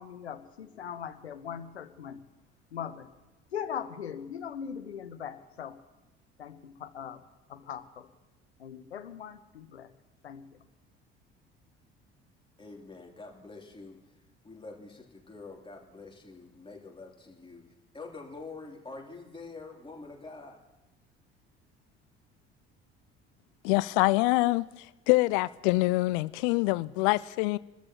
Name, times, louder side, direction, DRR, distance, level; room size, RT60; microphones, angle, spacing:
voice 1, 0.0-2.2 2.7-3.1 3.5-5.8 6.4-7.2 7.5-8.1 8.6-9.9 10.2-10.7, left 8 dB, 80° left, 0.8 m, -40 dB
voice 2, 12.6-14.0 14.4-17.6 17.9-20.6, left 3 dB, 15° left, 3.3 m, -46 dB
voice 3, 23.6-24.7 25.1-27.6, left 21 dB, 60° left, 0.5 m, -25 dB
27.0 x 13.5 x 3.0 m
figure-of-eight pair, 55°, 32 cm